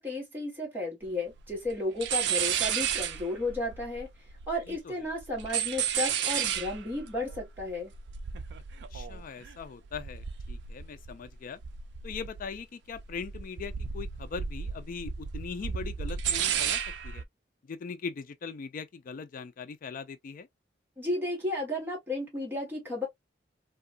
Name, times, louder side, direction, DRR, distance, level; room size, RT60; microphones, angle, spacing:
voice 1, 0.0-4.1 4.5-7.9 21.0-23.1, left 2 dB, 10° right, 1.2 m, -33 dB
sound 1, 1.0-1.1 1.3-1.8 2.0-4.8 5.1-11.4 11.6-12.6 12.9-17.2, right 8 dB, 65° right, 0.4 m, -33 dB
voice 2, 8.9-11.6 12.0-17.2 17.7-20.5, left 5 dB, 50° left, 0.3 m, -40 dB
2.9 x 2.3 x 2.3 m
head